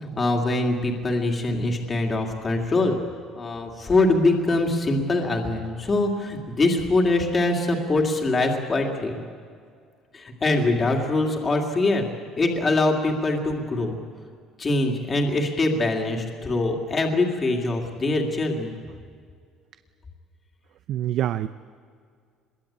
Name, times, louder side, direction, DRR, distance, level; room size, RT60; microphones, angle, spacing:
voice 1, 0.0-3.0 3.4-9.2 10.1-12.1 12.4-14.0 14.6-18.7, left 2 dB, 20° left, 2 dB, 2.4 m, -23 dB
voice 2, 20.9-21.5, right 12 dB, 50° right, 12 dB, 0.5 m, -27 dB
25.0 x 21.5 x 8.7 m, 2.1 s
cardioid pair, 170°, 0 cm